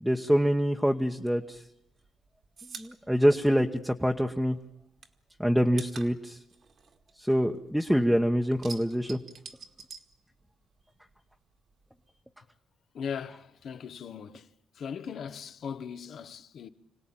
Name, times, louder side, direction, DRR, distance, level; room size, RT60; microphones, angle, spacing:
voice 1, 0.0-1.6 2.8-4.6 5.4-6.4 7.2-9.2, equal, ahead, 1.1 m, -25 dB
sound 1, 1.5-4.3 4.6-7.9 8.2-10.8 11.1-12.2, right 5 dB, 50° right, 2.0 m, -47 dB
voice 2, 12.9-14.5 14.7-16.7, left 7 dB, 60° left, 1.1 m, -39 dB
26.0 x 17.5 x 8.8 m
cardioid pair, 90°, 0 cm